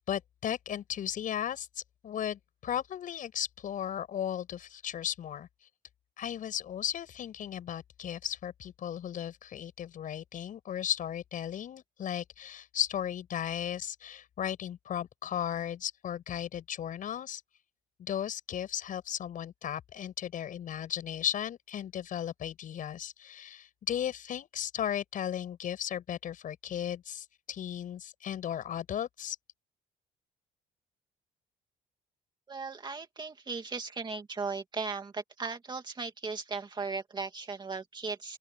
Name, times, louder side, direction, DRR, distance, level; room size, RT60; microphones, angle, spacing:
voice 1, 0.0-5.5 6.2-17.4 18.0-29.4, left 10 dB, 60° left, 6.6 m, -35 dB
voice 2, 32.5-38.4, right 4 dB, 30° right, 2.3 m, -37 dB
open air
cardioid pair, 90°, 15 cm